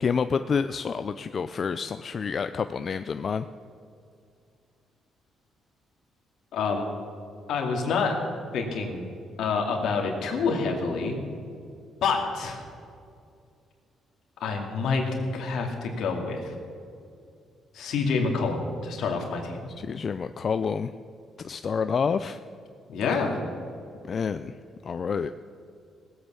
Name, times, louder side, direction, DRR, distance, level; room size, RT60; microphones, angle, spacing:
voice 1, 0.0-3.5 19.8-20.9 21.4-22.4 24.0-24.6 24.8-25.3, left 6 dB, 45° left, 10 dB, 0.4 m, -28 dB
voice 2, 6.5-6.9 7.5-8.2 8.5-9.0 9.4-11.2 12.0-12.6 14.4-15.0 15.3-16.5 17.7-19.6 22.9-23.4, left 4 dB, 75° left, 2 dB, 2.4 m, -27 dB
18.0 x 8.2 x 7.0 m, 2.4 s
cardioid pair, 90°, 0 cm